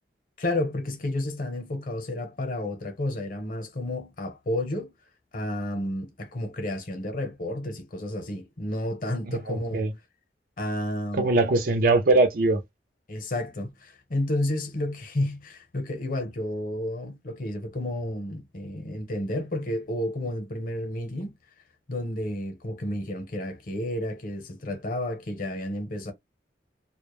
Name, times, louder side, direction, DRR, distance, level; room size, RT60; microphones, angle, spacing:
voice 1, 0.4-4.9 5.3-9.8 10.6-11.3 13.1-21.3 21.9-26.1, left 1 dB, 50° left, 0.8 m, -31 dB
voice 2, 9.3-9.9 11.1-12.6, right 2 dB, 55° right, 0.5 m, -22 dB
2.2 x 2.0 x 3.0 m
head